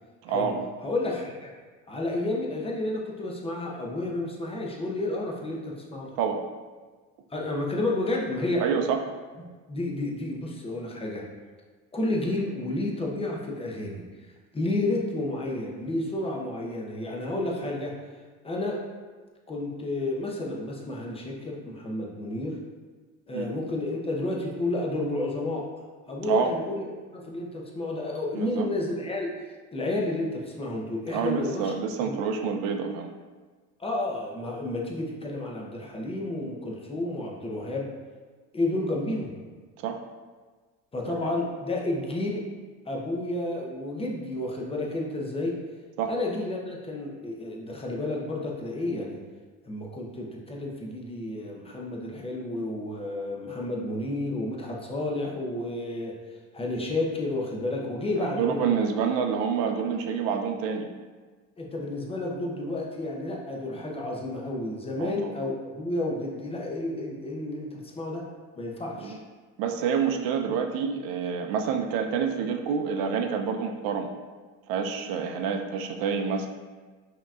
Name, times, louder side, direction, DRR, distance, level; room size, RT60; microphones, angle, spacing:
voice 1, 0.2-0.6 6.2-6.4 8.6-9.0 23.3-23.5 26.2-26.5 28.3-28.7 31.1-33.1 39.8-40.0 46.0-46.1 58.2-60.9 65.0-65.4 69.0-69.2 69.6-74.1 74.7-76.5, right 6 dB, 70° right, 5 dB, 0.6 m, -28 dB
voice 2, 0.8-1.5 1.9-6.2 7.3-8.6 9.7-11.2 11.9-14.0 14.5-17.9 18.4-18.8 19.5-22.6 23.3-25.7 26.1-29.3 29.7-31.7 32.0-32.2 33.8-37.9 38.5-39.4 40.9-42.4 42.9-45.6 46.1-49.2 49.7-56.1 56.5-58.8 61.6-68.2 68.6-69.2, left 2 dB, 15° left, -1 dB, 0.7 m, -31 dB
5.3 x 2.9 x 2.4 m, 1.4 s
supercardioid pair, 105°, 37 cm